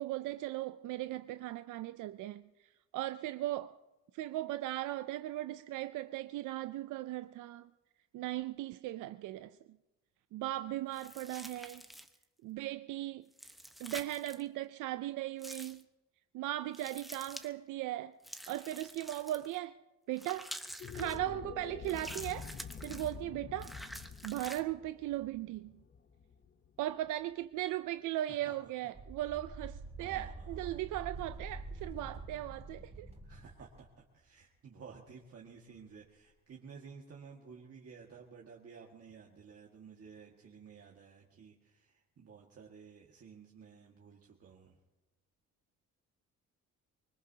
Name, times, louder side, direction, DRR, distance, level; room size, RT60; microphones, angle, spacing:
voice 1, 0.0-2.4 2.9-3.7 4.1-7.7 8.1-9.5 10.3-11.8 12.4-13.2 13.8-15.8 16.3-18.1 18.5-19.7 20.1-20.5 20.9-22.5 22.8-23.7 24.2-25.7 26.8-33.1, right 15 dB, 85° right, 0.5 m, -38 dB
sound 1, 10.9-12.2 13.3-14.4 15.4-15.8 16.7-17.5 18.2-19.6 20.2-21.2 21.8-23.1 23.6-24.6, equal, ahead, 1.0 m, -48 dB
sound 2, 20.7-27.1, left 6 dB, 35° left, 0.7 m, -47 dB
voice 2, 28.5-28.9 30.0-30.9 33.2-44.8, right 6 dB, 50° right, 1.8 m, -54 dB
sound 3, 28.9-33.9, right 3 dB, 20° right, 2.6 m, -46 dB
24.5 x 20.5 x 2.8 m
cardioid pair, 90°, 30 cm